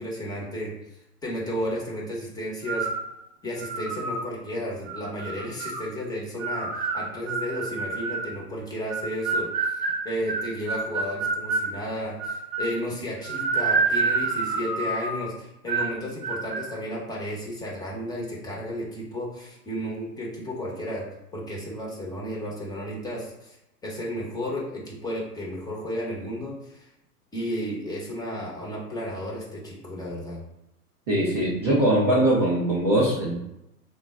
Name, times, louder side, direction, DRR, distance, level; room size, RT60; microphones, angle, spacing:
voice 1, 0.0-2.9 3.4-21.1 21.3-23.6 23.8-26.9 27.3-30.4, equal, 10° left, -4 dB, 0.7 m, -33 dB
sound 1, 2.7-3.1 3.6-4.2 4.9-5.8 6.4-8.3 8.9-11.7 12.2-12.8 13.2-15.2 15.7-16.0 16.2-16.7, right 4 dB, 40° right, 0.8 m, -28 dB
voice 2, 31.1-33.4, right 1 dB, 20° right, -7 dB, 0.3 m, -21 dB
3.7 x 2.2 x 3.4 m, 0.86 s
hypercardioid pair, 115°, 49 cm